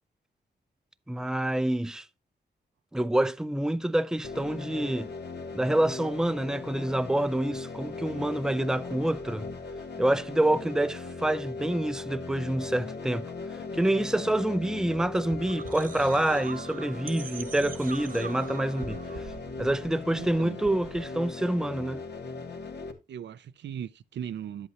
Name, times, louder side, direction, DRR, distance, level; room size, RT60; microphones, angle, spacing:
voice 1, 1.1-2.0 2.9-5.1 5.5-9.5 10.0-13.3 13.8-19.0 19.6-22.0, right 1 dB, 5° right, 0.5 m, -27 dB
sound 1, 4.2-22.9, left 4 dB, 70° left, 1.7 m, -39 dB
sound 2, 14.6-21.3, right 6 dB, 50° right, 0.9 m, -43 dB
voice 2, 20.2-20.6 23.1-24.7, right 9 dB, 90° right, 0.6 m, -38 dB
11.0 x 8.2 x 2.9 m
wide cardioid pair, 105°, 18 cm